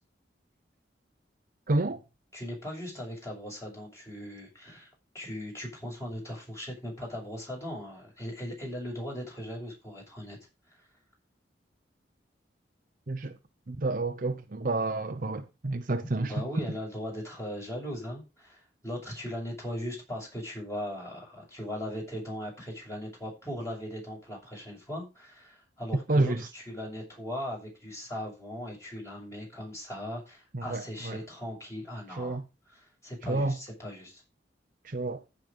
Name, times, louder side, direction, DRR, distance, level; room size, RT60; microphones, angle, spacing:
voice 1, 1.7-2.0 13.1-13.4 13.7-16.3 26.1-26.5 30.5-31.2 32.1-32.4 33.3-33.6 34.8-35.2, right 2 dB, 50° right, 0.8 m, -29 dB
voice 2, 2.3-4.9 5.1-10.4 16.1-32.4 32.7-34.2, equal, 15° left, 6.8 m, -39 dB
15.0 x 5.3 x 5.1 m
head